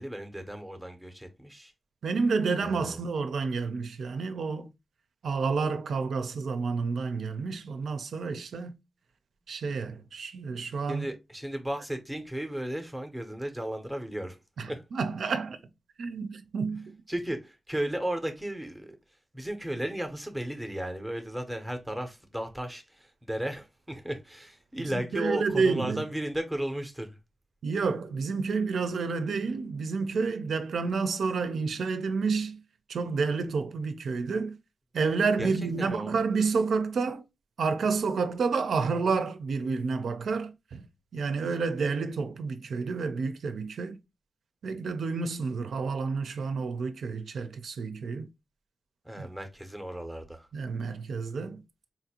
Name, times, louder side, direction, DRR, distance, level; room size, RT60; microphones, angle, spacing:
voice 1, 0.0-1.7 2.6-3.0 10.9-14.4 14.7-14.8 17.1-19.0 19.3-27.2 35.4-36.2 49.0-50.5, right 1 dB, ahead, 0.6 m, -35 dB
voice 2, 2.0-4.7 5.2-8.7 9.5-11.1 14.6-15.6 16.0-17.0 24.8-26.0 27.6-32.6 32.9-34.6 34.9-37.2 37.6-40.8 41.1-44.0 44.6-48.3 49.2-49.3 50.5-51.6, right 4 dB, 75° right, 0.4 m, -29 dB
4.0 x 2.5 x 2.8 m
wide cardioid pair, 175°, 0 cm